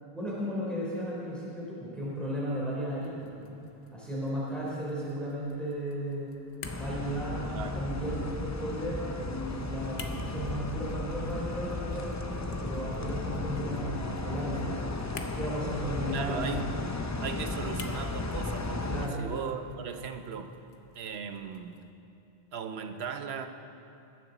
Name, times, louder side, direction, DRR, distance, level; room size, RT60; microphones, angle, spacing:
voice 1, 0.1-3.5 3.9-6.3 6.7-15.0 15.3-16.5 18.9-19.3, equal, ahead, -7 dB, 3.3 m, -35 dB
sound 1, 3.0-21.9, left 4 dB, 75° left, 1.2 m, -52 dB
sound 2, 6.6-19.1, left 2 dB, 25° left, 0.4 m, -35 dB
voice 2, 7.5-7.8 16.1-16.7 17.2-20.5 20.9-21.8 22.5-23.5, right 6 dB, 75° right, 7 dB, 1.0 m, -38 dB
21.0 x 10.0 x 4.0 m, 2.7 s
omnidirectional pair, 1.1 m